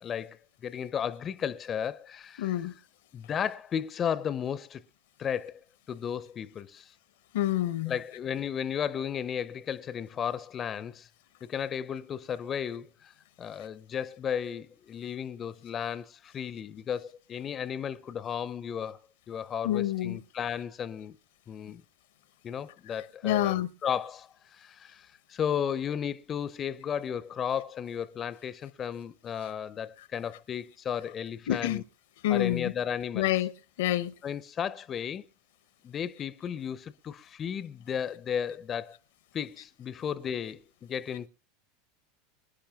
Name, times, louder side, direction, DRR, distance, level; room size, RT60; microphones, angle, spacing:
voice 1, 0.0-2.5 3.1-4.8 5.2-5.6 5.9-6.9 7.9-11.1 11.4-13.1 13.4-19.0 19.3-21.2 21.5-21.8 22.4-31.8 32.3-33.3 34.2-35.2 35.8-39.0 39.3-41.3, left 8 dB, 35° left, 0.6 m, -34 dB
voice 2, 2.4-2.7 7.3-7.9 19.6-20.2 23.2-23.7 31.5-31.8 32.2-32.7 33.1-33.5 33.8-34.1, left 13 dB, 65° left, 0.7 m, -27 dB
25.5 x 10.0 x 2.3 m
hypercardioid pair, 85°, 0 cm